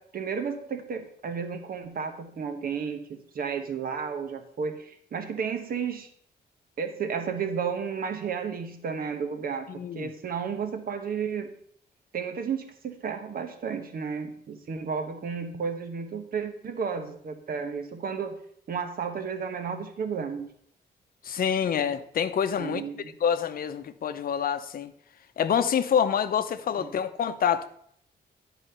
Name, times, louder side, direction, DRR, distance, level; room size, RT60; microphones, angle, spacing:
voice 1, 0.0-6.1 6.8-11.5 12.1-18.4 18.7-20.5 22.6-23.1 26.8-26.9, right 6 dB, 60° right, 1.0 m, -32 dB
voice 2, 9.7-10.1 21.2-22.8 23.2-24.9 25.4-27.7, left 8 dB, 55° left, 0.7 m, -26 dB
11.0 x 4.1 x 6.7 m
wide cardioid pair, 140°, 18 cm